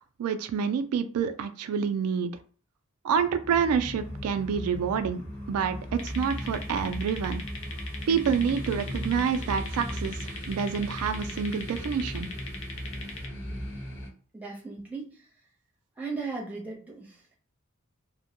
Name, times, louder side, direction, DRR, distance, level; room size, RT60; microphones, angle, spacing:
voice 1, 0.2-2.3 3.0-5.2 5.5-7.4 8.1-12.3, right 6 dB, 85° right, 10 dB, 0.3 m, -28 dB
sound 1, 3.1-14.1, equal, 10° left, 1.0 m, -37 dB
sound 2, 6.0-13.3, left 3 dB, 60° left, 0.5 m, -41 dB
voice 2, 14.3-15.3 16.0-17.4, right 4 dB, 5° right, -3 dB, 0.7 m, -37 dB
2.2 x 2.1 x 2.8 m, 0.43 s
head